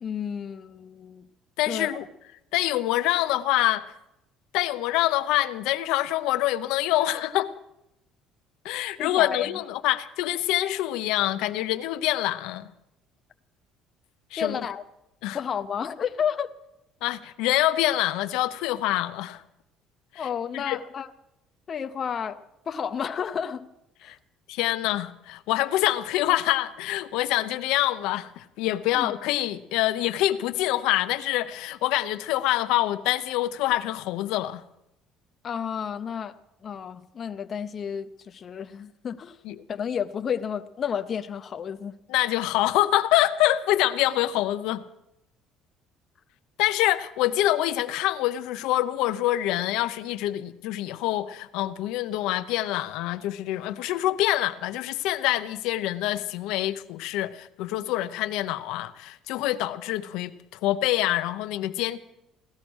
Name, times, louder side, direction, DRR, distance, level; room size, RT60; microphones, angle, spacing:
voice 1, 0.0-1.3 1.7-1.9 9.0-9.5 14.4-14.8 15.3-16.5 20.2-21.1 21.7-23.7 24.0-24.2 28.9-29.1 35.4-39.4 39.7-41.9, left 7 dB, 35° left, 0.6 m, -31 dB
voice 2, 1.6-2.0 2.5-3.9 4.5-7.5 8.6-12.7 14.3-14.6 15.2-15.4 17.0-19.4 20.1-20.8 24.0-24.2 24.5-34.6 39.4-39.6 42.1-44.8 46.6-62.0, left 15 dB, 85° left, 0.7 m, -26 dB
17.0 x 13.0 x 6.3 m
cardioid pair, 155°, 0 cm